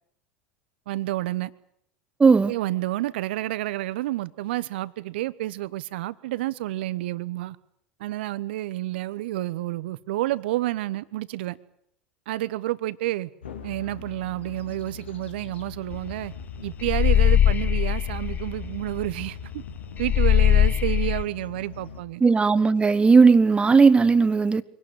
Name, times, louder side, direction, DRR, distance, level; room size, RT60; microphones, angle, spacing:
voice 1, 0.9-1.5 2.5-7.6 8.0-11.6 12.3-13.3 13.6-16.3 16.6-19.4 20.0-22.2, right 16 dB, 65° right, 17 dB, 1.0 m, -29 dB
voice 2, 2.2-2.5 22.2-24.6, right 4 dB, 15° right, 15 dB, 1.1 m, -17 dB
sound 1, 13.4-22.0, left 5 dB, 75° left, 2.1 m, -41 dB
sound 2, 15.9-16.1 16.4-19.2 19.5-19.6 20.0-21.2, left 10 dB, 25° left, 0.9 m, -21 dB
24.0 x 18.5 x 9.1 m, 0.71 s
figure-of-eight pair, 80°, 6 cm